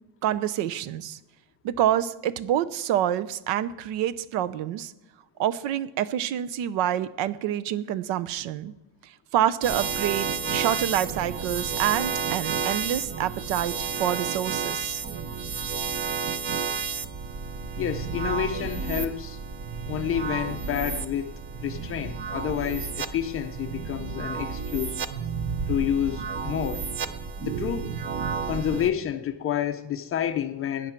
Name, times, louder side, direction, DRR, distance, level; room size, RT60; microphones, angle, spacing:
voice 1, 0.2-1.2 1.6-4.9 5.4-8.7 9.3-15.0, right 11 dB, 70° right, 0.7 m, -27 dB
sound 1, 9.6-28.9, right 6 dB, 25° right, 0.5 m, -31 dB
sound 2, 10.4-15.6, left 1 dB, 10° right, 2.4 m, -50 dB
voice 2, 17.8-19.4 19.9-21.3 21.6-25.0 25.7-26.9 27.4-27.9 28.5-30.9, left 10 dB, 30° left, 0.4 m, -29 dB
18.0 x 9.8 x 4.4 m
cardioid pair, 175°, 45 cm